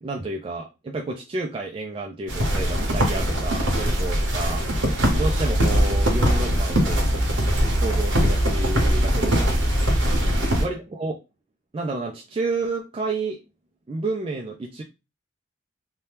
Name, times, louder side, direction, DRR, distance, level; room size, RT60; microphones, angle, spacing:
voice 1, 0.0-4.6 5.1-7.1 7.7-9.6 10.6-11.2 11.7-13.4 13.9-14.8, right 3 dB, 30° right, 1 dB, 0.3 m, -30 dB
sound 1, 2.3-10.7, equal, 85° right, 1.0 m, -21 dB
2.8 x 2.2 x 3.2 m, 0.27 s
head